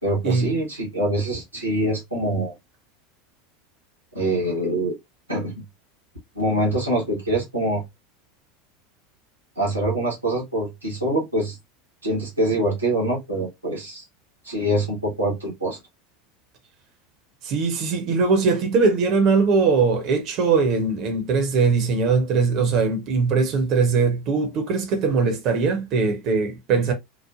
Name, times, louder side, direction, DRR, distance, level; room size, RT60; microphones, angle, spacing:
voice 1, 0.0-2.5 4.1-4.9 5.3-5.6 6.3-7.8 9.6-11.6 12.0-14.0 14.4-15.8, right 1 dB, 85° right, 1.1 m, -24 dB
voice 2, 17.4-26.9, right 4 dB, 45° right, 0.8 m, -21 dB
3.1 x 2.1 x 2.4 m
figure-of-eight pair, 80°, 0 cm